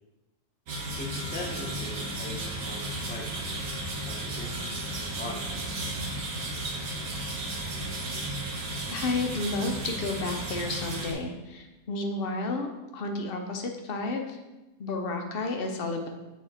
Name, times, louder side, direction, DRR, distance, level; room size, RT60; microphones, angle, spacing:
sound 1, 0.7-11.1, right 1 dB, 90° right, 1.4 m, -34 dB
voice 1, 1.0-3.8 4.1-5.6, left 1 dB, 10° left, -1 dB, 0.7 m, -41 dB
voice 2, 8.9-14.4 14.8-16.1, left 3 dB, 55° left, 4 dB, 0.8 m, -31 dB
6.8 x 3.6 x 4.2 m, 1.1 s
omnidirectional pair, 1.4 m